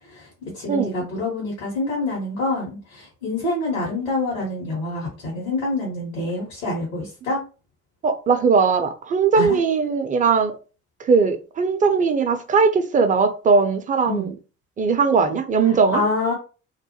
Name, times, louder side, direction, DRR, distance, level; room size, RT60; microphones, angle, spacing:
voice 1, 0.0-7.4 9.3-9.6 14.1-14.3 15.6-16.3, left 2 dB, 75° left, 1.0 m, -26 dB
voice 2, 8.0-10.6 11.0-14.3 14.8-16.0, right 5 dB, 20° right, 0.5 m, -19 dB
2.4 x 2.1 x 2.8 m
figure-of-eight pair, 50°, 38 cm